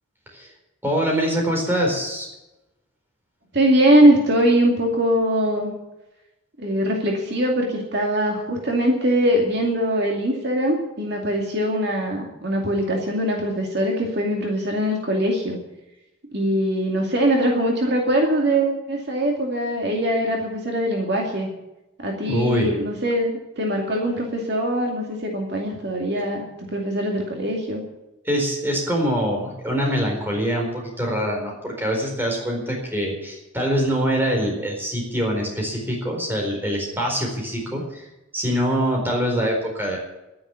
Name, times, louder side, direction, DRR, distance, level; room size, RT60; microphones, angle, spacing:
voice 1, 0.8-2.3 22.3-22.7 28.2-38.1 38.3-40.0, equal, 10° right, 0 dB, 4.4 m, -24 dB
voice 2, 3.5-5.7 6.6-15.6 16.3-21.5 22.0-27.8, right 1 dB, 50° right, 0 dB, 2.4 m, -22 dB
11.0 x 10.0 x 9.9 m, 0.96 s
head